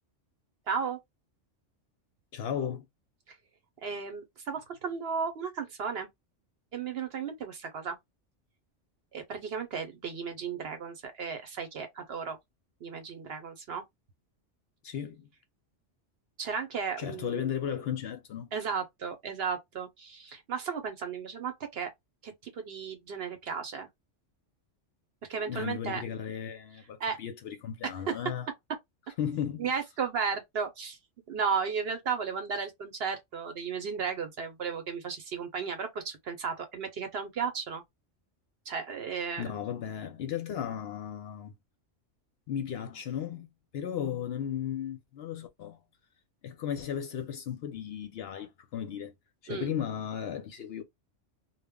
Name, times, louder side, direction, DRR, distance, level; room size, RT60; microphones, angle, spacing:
voice 1, 0.7-1.0 3.3-3.4 3.8-6.1 6.7-8.0 9.1-12.4 12.8-13.8 16.4-17.4 18.5-21.9 22.2-23.9 25.3-26.0 27.0-27.2 28.1-28.2 29.6-31.0 31.3-37.8 38.7-39.4 49.5-49.7, right 6 dB, 60° right, 0.8 m, -34 dB
voice 2, 2.3-2.9 14.8-15.3 17.0-18.5 25.5-28.5 29.2-29.7 39.4-41.5 42.5-43.5 43.7-45.8 46.4-49.1 49.4-50.8, left 9 dB, 65° left, 0.7 m, -35 dB
2.2 x 2.0 x 3.4 m
omnidirectional pair, 1.3 m